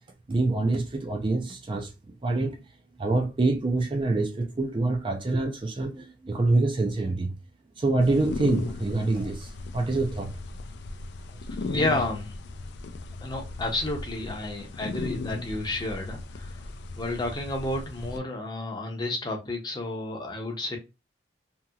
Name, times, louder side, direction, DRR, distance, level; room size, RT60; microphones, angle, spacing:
voice 1, 0.3-1.9 2.2-2.6 3.0-7.3 7.8-10.3, right 2 dB, 25° right, 0.4 m, -26 dB
sound 1, 8.0-18.2, left 3 dB, 65° left, 0.4 m, -37 dB
voice 2, 11.7-12.3 13.2-16.5 17.0-20.8, left 2 dB, 25° left, 0.7 m, -31 dB
2.8 x 2.8 x 2.2 m
head